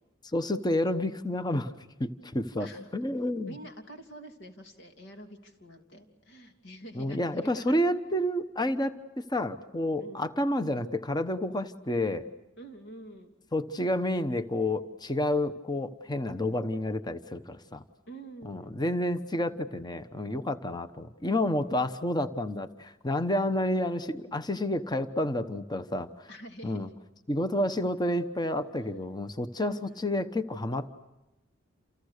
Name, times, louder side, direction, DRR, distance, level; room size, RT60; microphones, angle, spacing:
voice 1, 0.3-1.7 2.0-2.7 2.9-3.5 6.9-12.2 13.5-17.8 18.4-26.3 26.6-26.9 27.3-30.9, left 1 dB, 20° left, 11 dB, 1.0 m, -30 dB
voice 2, 2.6-2.9 3.5-7.8 10.0-10.3 12.6-13.3 18.1-18.8 26.3-26.8 29.6-30.1, right 1 dB, 70° left, 5 dB, 2.9 m, -47 dB
29.0 x 28.5 x 6.7 m, 0.95 s
head